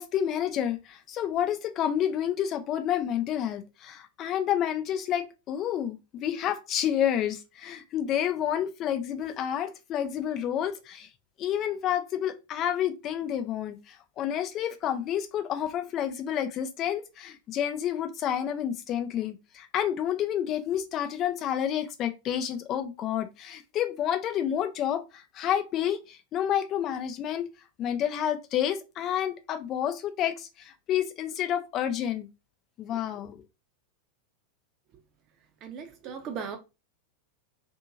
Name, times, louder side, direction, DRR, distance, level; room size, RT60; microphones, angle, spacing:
voice 1, 0.0-11.1 11.4-27.5 27.8-32.3 32.8-33.4, left 10 dB, 35° left, 0.5 m, -29 dB
voice 2, 35.6-36.6, right 6 dB, 35° right, 0.7 m, -37 dB
2.7 x 2.7 x 2.4 m
figure-of-eight pair, 90°, 0 cm